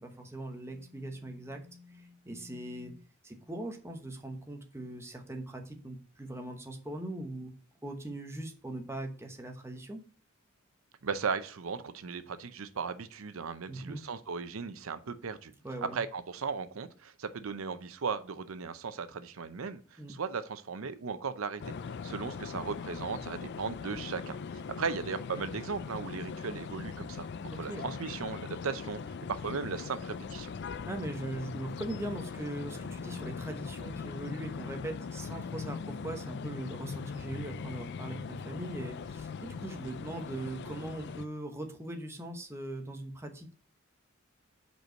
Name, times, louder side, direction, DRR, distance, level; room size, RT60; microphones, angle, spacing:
voice 1, 0.0-7.5 7.8-10.0 13.7-14.0 15.6-16.0 20.0-20.1 27.5-27.9 30.9-43.5, right 1 dB, 15° right, 3 dB, 1.0 m, -40 dB
voice 2, 11.0-15.5 15.8-21.7 22.0-24.4 24.7-27.3 27.6-29.0 29.3-30.5, right 5 dB, 75° right, 12 dB, 0.6 m, -37 dB
sound 1, 21.6-41.2, left 5 dB, 55° left, 0.4 m, -40 dB
5.4 x 4.6 x 6.3 m, 0.40 s
head